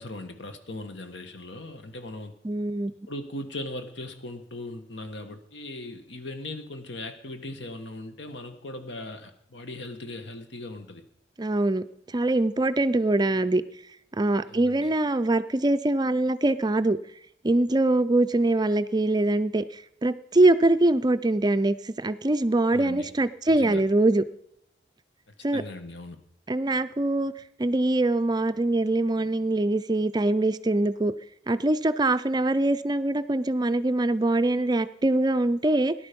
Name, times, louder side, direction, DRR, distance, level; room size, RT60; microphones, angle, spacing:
voice 1, 0.0-2.4 3.1-11.0 14.5-14.9 22.7-23.1 23.5-23.8 25.3-26.2, left 2 dB, 75° left, 7 dB, 1.6 m, -39 dB
voice 2, 2.4-2.9 11.4-13.6 14.2-17.0 17.4-24.2 25.4-25.6 26.5-27.3 27.6-31.1 31.5-35.9, right 2 dB, 25° right, 13 dB, 0.4 m, -23 dB
18.0 x 11.0 x 5.3 m, 0.79 s
head